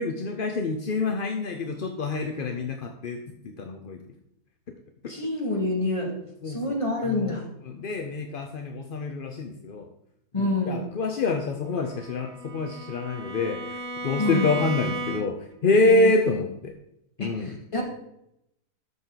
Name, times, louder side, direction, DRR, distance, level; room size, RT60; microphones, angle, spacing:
voice 1, 0.0-3.2 3.4-4.0 5.0-5.1 6.4-6.8 7.0-7.4 7.7-9.9 10.4-16.7 17.2-17.6, left 3 dB, 50° left, 5 dB, 0.7 m, -26 dB
voice 2, 5.1-6.1 6.5-7.4 10.3-10.8 14.2-14.6 15.8-16.1 17.2-17.8, left 2 dB, 20° left, -1 dB, 2.2 m, -27 dB
Bowed string instrument, 11.7-15.6, right 2 dB, 35° right, 0.9 m, -35 dB
12.5 x 6.0 x 3.9 m, 0.80 s
omnidirectional pair, 1.6 m